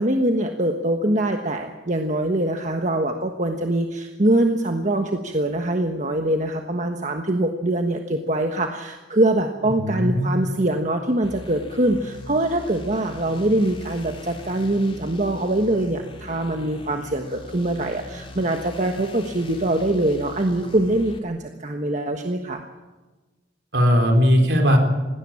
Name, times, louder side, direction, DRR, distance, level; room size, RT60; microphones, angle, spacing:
voice 1, 0.0-22.6, right 1 dB, 45° right, 4 dB, 1.3 m, -23 dB
voice 2, 9.8-10.3 23.7-24.8, equal, 65° right, 4 dB, 3.9 m, -18 dB
sound 1, 11.2-21.2, left 2 dB, 30° left, 2.4 m, -41 dB
19.0 x 17.0 x 8.7 m, 1.2 s
head